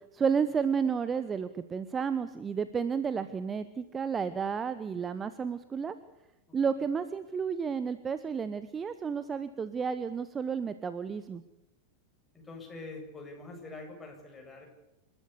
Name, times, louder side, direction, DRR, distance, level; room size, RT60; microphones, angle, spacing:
voice 1, 0.1-6.0 6.5-11.4, right 6 dB, 20° right, 13 dB, 1.0 m, -31 dB
voice 2, 12.3-14.7, left 3 dB, 10° left, 0 dB, 7.7 m, -45 dB
28.5 x 13.5 x 8.4 m, 0.94 s
figure-of-eight pair, 90°, 0 cm